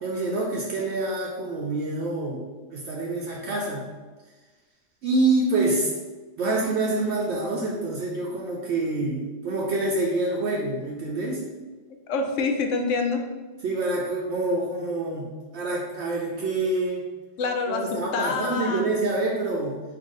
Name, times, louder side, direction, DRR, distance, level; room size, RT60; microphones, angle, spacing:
voice 1, 0.0-2.4 2.7-3.9 5.0-5.9 6.4-11.4 13.6-17.0 17.7-19.8, right 2 dB, 70° right, -3 dB, 0.9 m, -26 dB
voice 2, 12.1-13.2 17.4-18.8, left 4 dB, 85° left, 4 dB, 0.9 m, -26 dB
3.7 x 2.8 x 3.9 m, 1.3 s
omnidirectional pair, 1.2 m